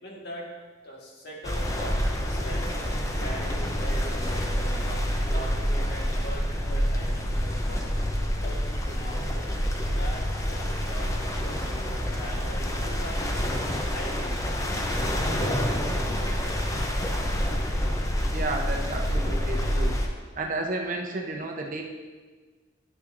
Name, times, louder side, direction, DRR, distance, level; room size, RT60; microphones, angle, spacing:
voice 1, 0.0-0.5 0.8-2.0 2.3-7.8 8.3-9.5 9.9-11.6 12.1-14.4 17.3-17.4, equal, 55° left, -2 dB, 1.6 m, -41 dB
sound 1, 1.4-20.1, equal, 15° left, 0.6 m, -27 dB
voice 2, 18.3-20.0 20.3-21.8, right 2 dB, 45° right, 2 dB, 0.8 m, -32 dB
10.0 x 6.8 x 2.6 m, 1.4 s
head